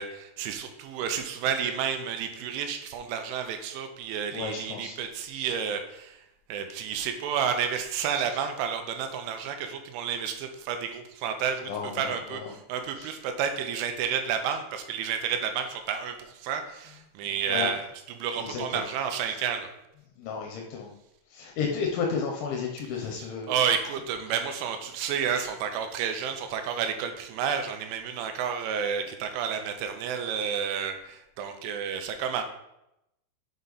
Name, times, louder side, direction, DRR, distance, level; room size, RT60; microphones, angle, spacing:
voice 1, 0.0-6.2 6.5-17.9 18.2-19.7 23.5-32.4, right 7 dB, 85° right, 6 dB, 3.2 m, -31 dB
voice 2, 4.3-5.0 5.3-5.5 8.1-8.2 11.7-12.5 13.0-13.1 17.5-17.7 18.4-18.8 19.3-19.4 20.2-20.9 21.3-23.5, left 5 dB, 80° left, 1 dB, 3.2 m, -32 dB
7.5 x 5.5 x 4.0 m, 0.84 s
omnidirectional pair, 5.5 m